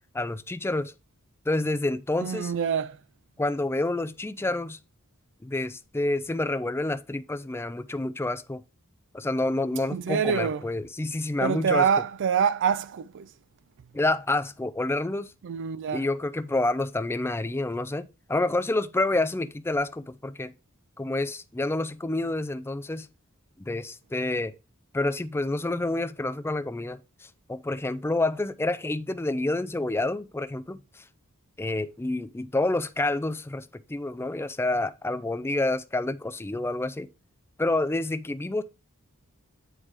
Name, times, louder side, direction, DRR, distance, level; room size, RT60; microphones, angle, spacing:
voice 1, 0.1-0.9 1.5-2.5 3.4-4.8 5.4-8.6 9.1-11.9 13.9-15.3 15.9-20.5 21.0-23.1 23.6-24.5 24.9-31.0 31.6-37.1 37.6-38.6, left 2 dB, 10° left, 0.4 m, -28 dB
voice 2, 2.2-3.0 9.9-10.6 11.4-13.3 15.4-16.1, right 7 dB, 55° right, 0.4 m, -26 dB
8.8 x 3.3 x 4.8 m
head